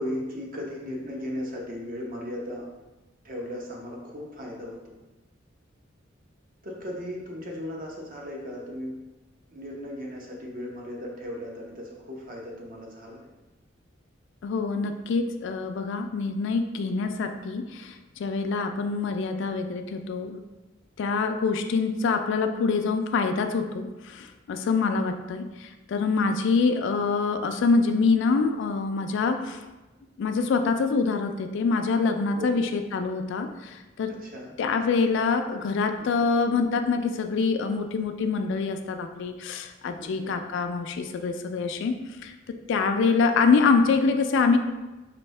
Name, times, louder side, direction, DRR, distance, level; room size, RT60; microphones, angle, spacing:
voice 1, 0.0-2.7 3.2-4.9 6.6-8.9 9.5-13.3 32.3-32.6 34.1-34.5 36.0-36.1 40.0-40.3, left 1 dB, 45° right, -1 dB, 0.8 m, -36 dB
voice 2, 14.4-20.4 21.0-29.6 30.2-34.1 34.6-42.0 42.2-44.6, left 4 dB, 65° left, 6 dB, 0.3 m, -25 dB
4.3 x 2.7 x 3.2 m, 1.1 s
head